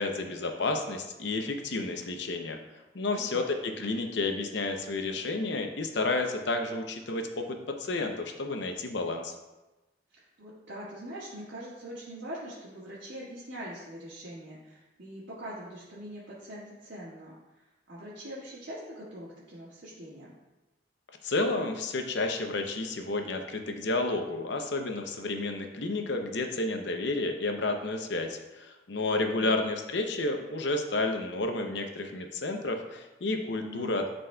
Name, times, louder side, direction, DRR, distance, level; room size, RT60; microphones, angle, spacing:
voice 1, 0.0-2.6 2.9-9.3 21.2-34.0, left 2 dB, 70° left, 5 dB, 0.7 m, -31 dB
voice 2, 3.1-3.4 10.1-20.3 29.0-29.6 33.6-33.9, equal, 85° right, -9 dB, 1.7 m, -43 dB
11.0 x 4.1 x 2.3 m, 1.1 s
head